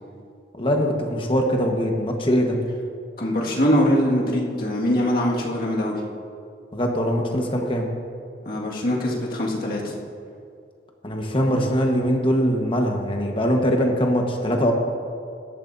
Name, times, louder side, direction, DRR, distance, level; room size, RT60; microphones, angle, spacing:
voice 1, 0.6-2.6 6.7-7.9 11.0-14.7, equal, 30° left, 2 dB, 1.2 m, -22 dB
voice 2, 3.2-6.0 8.5-9.9, equal, 55° left, -3 dB, 1.9 m, -22 dB
16.5 x 12.5 x 2.7 m, 2.4 s
head